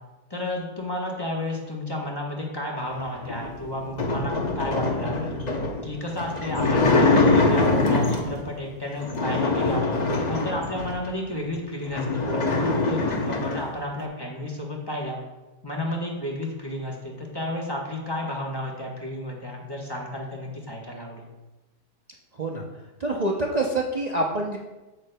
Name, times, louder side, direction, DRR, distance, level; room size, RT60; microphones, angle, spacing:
voice 1, 0.3-5.4 5.8-9.8 10.3-15.2 15.6-21.3, left 1 dB, 20° left, -1 dB, 0.9 m, -32 dB
sound 1, 3.3-8.4 9.0-11.1 11.5-11.6 11.8-13.7, left 3 dB, 40° left, 0.6 m, -23 dB
voice 2, 23.0-24.6, right 2 dB, 65° right, -1 dB, 0.4 m, -26 dB
8.9 x 8.2 x 2.2 m, 1.1 s
omnidirectional pair, 1.7 m